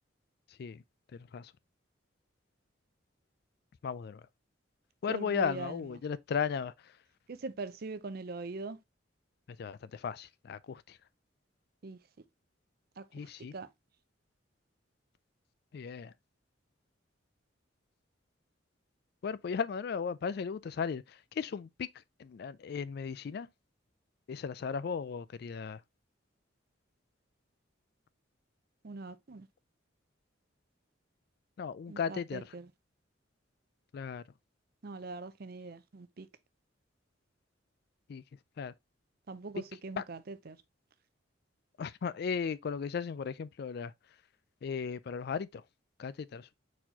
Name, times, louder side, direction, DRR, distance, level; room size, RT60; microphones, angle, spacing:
voice 1, 1.1-1.5 3.8-4.2 5.0-6.7 9.5-11.0 13.1-13.5 15.7-16.1 19.2-21.9 22.2-23.5 24.3-25.8 31.6-32.5 33.9-34.2 38.1-38.2 38.6-38.7 40.0-40.1 41.8-43.9 44.6-45.6 46.0-46.5, left 6 dB, 55° left, 0.3 m, -36 dB
voice 2, 5.1-6.0 7.3-8.8 11.8-12.2 13.0-13.7 28.8-29.5 31.9-32.7 34.8-36.3 39.3-40.6, right 3 dB, 50° right, 0.6 m, -42 dB
4.4 x 4.2 x 2.7 m
head